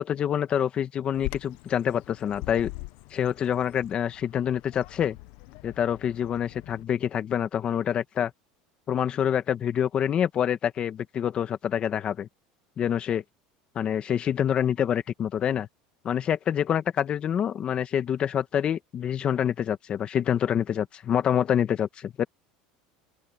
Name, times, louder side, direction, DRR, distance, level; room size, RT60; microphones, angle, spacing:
voice 1, 0.0-2.7 3.1-5.2 5.6-8.3 8.9-12.3 12.8-13.2 13.7-15.7 16.0-22.2, left 9 dB, 35° left, 1.5 m, -26 dB
Bird vocalization bird call bird song, 1.1-6.8, left 21 dB, 65° left, 1.0 m, -42 dB
open air
supercardioid pair, 135°, 3 cm